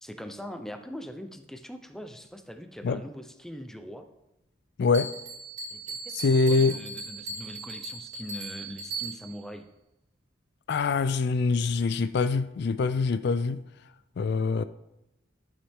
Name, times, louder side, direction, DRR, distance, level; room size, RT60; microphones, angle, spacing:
voice 1, 0.0-4.1 5.7-9.7, equal, ahead, 0.6 m, -42 dB
voice 2, 4.8-5.1 6.1-6.8 10.7-13.6 14.2-14.6, left 4 dB, 60° left, 0.4 m, -24 dB
Bell, 4.9-9.5, right 3 dB, 35° right, 2.3 m, -38 dB
12.0 x 7.1 x 3.6 m
head